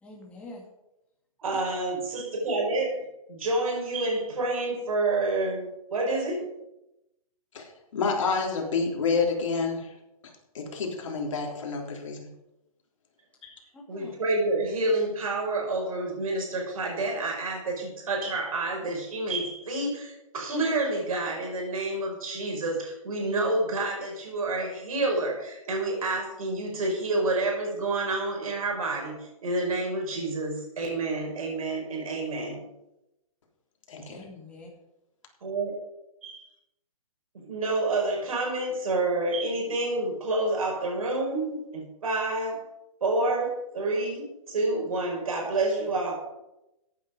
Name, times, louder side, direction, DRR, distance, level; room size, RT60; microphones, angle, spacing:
voice 1, 0.0-0.6 13.7-14.2 34.1-34.7, left 2 dB, 5° left, 2.3 m, -45 dB
voice 2, 1.4-3.0 3.3-5.6 5.9-6.5 13.9-32.6 35.4-35.7 36.2-36.5 37.4-42.6 43.0-46.1, right 2 dB, 70° right, 5.2 m, -28 dB
voice 3, 7.5-9.9 10.5-12.3 13.4-13.5 33.9-34.2, left 4 dB, 55° left, 3.5 m, -29 dB
14.5 x 9.3 x 5.1 m
hypercardioid pair, 165°, 19 cm